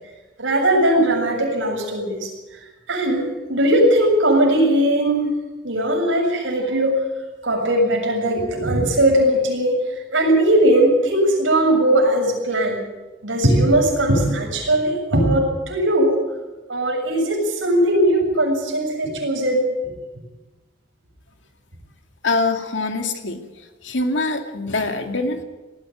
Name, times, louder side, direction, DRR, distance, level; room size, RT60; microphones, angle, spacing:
voice 1, 0.4-2.3 2.9-5.3 5.6-7.0 7.4-9.8 10.1-12.8 13.2-16.2 16.7-19.7, right 1 dB, 85° right, 0 dB, 7.3 m, -19 dB
voice 2, 22.2-23.4 23.8-25.4, left 3 dB, 75° left, 5 dB, 2.4 m, -23 dB
19.0 x 15.0 x 9.2 m, 1.1 s
head